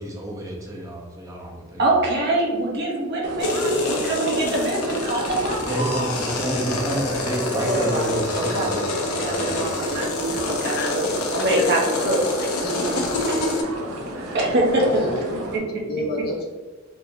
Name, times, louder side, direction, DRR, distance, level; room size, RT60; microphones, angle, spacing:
voice 1, 0.0-1.8 5.7-9.7, right 1 dB, 15° right, -2 dB, 0.7 m, -29 dB
voice 2, 1.8-5.8 7.5-13.4 14.3-15.0 15.5-15.8, right 1 dB, 50° right, -2 dB, 0.8 m, -24 dB
sound 1, 3.2-15.6, right 1 dB, 80° right, 0.7 m, -34 dB
sound 2, 3.4-13.6, left 2 dB, 90° left, 0.6 m, -27 dB
voice 3, 3.4-4.0 9.7-10.0 10.4-10.9 11.4-11.7 12.4-13.1 14.8-16.5, left 1 dB, 45° left, 0 dB, 0.6 m, -32 dB
4.6 x 2.7 x 2.6 m, 1.4 s
head